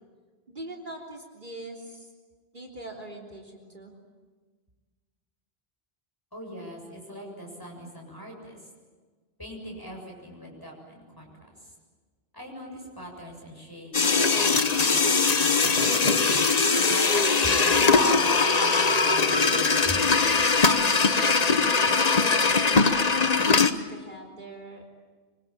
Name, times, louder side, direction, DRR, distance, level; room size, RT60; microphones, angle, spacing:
voice 1, 0.5-2.1 2.5-4.0 22.8-24.8, right 1 dB, 50° right, 2 dB, 3.7 m, -42 dB
voice 2, 6.3-8.6 9.4-11.3 12.3-16.0 16.7-20.0, equal, 20° left, 0 dB, 7.2 m, -41 dB
sound 1, 13.9-23.7, left 4 dB, 40° left, 1.1 m, -21 dB
25.5 x 25.5 x 8.8 m, 1.4 s
omnidirectional pair, 1.1 m